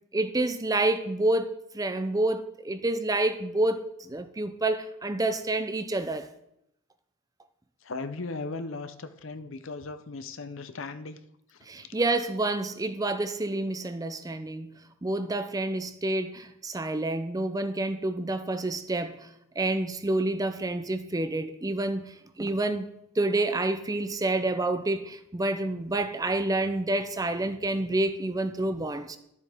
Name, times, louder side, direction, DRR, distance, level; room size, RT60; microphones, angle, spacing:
voice 1, 0.1-6.3 11.7-14.7 15.0-19.3 19.6-22.9 23.2-29.2, right 2 dB, 15° right, 0.5 m, -28 dB
voice 2, 7.8-11.2 11.5-12.0, left 3 dB, 65° left, 0.7 m, -37 dB
12.0 x 8.1 x 3.5 m
head